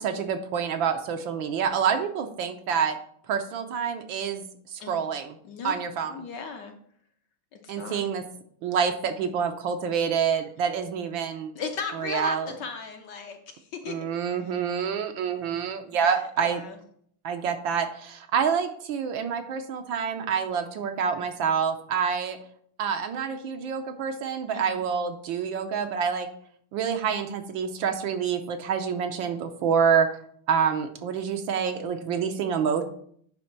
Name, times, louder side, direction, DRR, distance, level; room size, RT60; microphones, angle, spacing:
voice 1, 0.0-3.0 3.3-5.4 5.6-6.1 7.7-8.2 8.6-11.5 12.0-12.5 13.9-16.6 17.2-22.4 22.8-26.3 26.7-30.1 30.5-32.8, right 7 dB, 70° right, 6 dB, 1.4 m, -27 dB
voice 2, 5.4-5.8 6.1-6.7 7.5-8.1 11.5-14.0 14.4-14.5 16.0-16.8 24.5-24.9, left 5 dB, 65° left, 4 dB, 1.3 m, -37 dB
9.7 x 3.5 x 5.9 m, 0.63 s
omnidirectional pair, 2.4 m